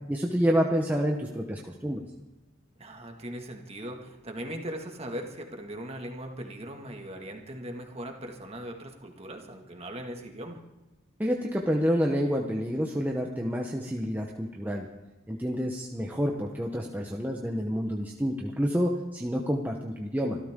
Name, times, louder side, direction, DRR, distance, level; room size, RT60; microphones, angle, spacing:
voice 1, 0.1-2.0 11.2-14.9 15.3-20.4, equal, 10° right, 0 dB, 1.0 m, -28 dB
voice 2, 2.8-10.6, right 1 dB, 30° right, 3 dB, 2.0 m, -39 dB
25.0 x 13.5 x 3.7 m, 1.0 s
head